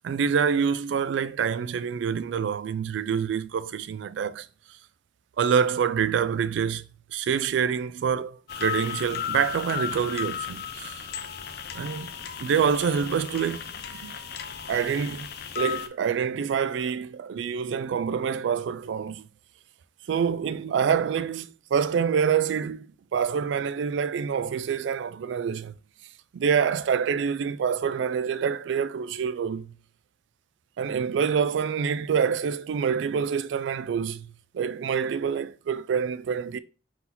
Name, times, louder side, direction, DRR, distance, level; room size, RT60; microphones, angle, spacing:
voice 1, 0.0-4.5 5.4-11.0 11.7-12.1 12.4-13.6 13.9-14.2 14.7-15.3 15.6-19.3 20.1-22.9 23.1-25.7 26.3-29.7 30.8-36.6, right 7 dB, 70° right, 0.3 m, -26 dB
sound 1, 8.5-15.9, left 8 dB, 60° left, 0.5 m, -35 dB
3.9 x 2.7 x 4.2 m
head